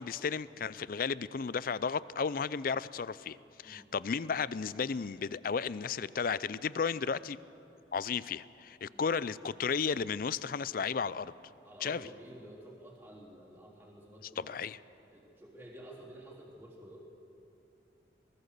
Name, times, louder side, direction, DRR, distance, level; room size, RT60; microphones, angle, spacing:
voice 1, 0.0-3.4 3.6-7.4 7.9-11.3 11.8-12.0 14.4-14.8, left 5 dB, 50° left, 18 dB, 0.4 m, -33 dB
voice 2, 11.6-14.6 15.1-17.0, right 1 dB, 10° right, -8 dB, 3.6 m, -51 dB
21.5 x 19.5 x 6.8 m, 2.8 s
head